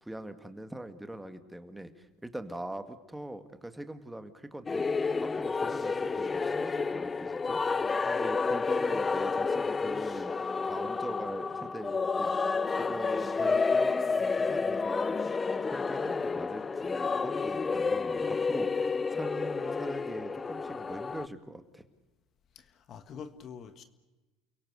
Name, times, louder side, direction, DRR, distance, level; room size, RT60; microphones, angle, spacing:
voice 1, 0.0-4.9 5.2-7.6 8.0-10.3 10.6-12.3 12.7-15.2 15.6-21.8, right 1 dB, 5° right, 9 dB, 2.0 m, -42 dB
sound 1, 4.7-21.3, left 4 dB, 25° left, 0.7 m, -30 dB
voice 2, 22.5-23.8, left 6 dB, 45° left, 10 dB, 1.7 m, -45 dB
29.0 x 17.5 x 8.1 m, 1.1 s
supercardioid pair, 95°, 0 cm